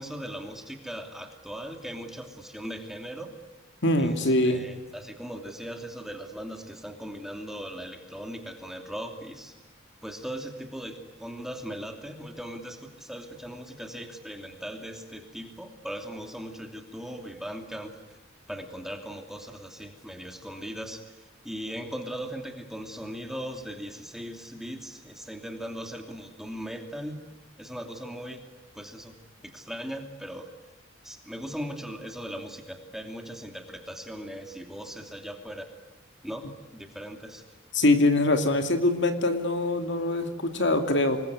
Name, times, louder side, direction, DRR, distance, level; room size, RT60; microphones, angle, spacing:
voice 1, 0.0-3.3 4.0-9.6 10.0-17.9 18.5-21.0 21.4-27.3 27.6-28.4 28.7-29.2 29.4-30.5 31.0-35.7 36.2-37.4, equal, ahead, 4 dB, 2.8 m, -39 dB
voice 2, 3.8-4.6 37.7-41.2, left 2 dB, 65° left, 6 dB, 2.6 m, -23 dB
27.0 x 21.0 x 9.5 m, 1.1 s
head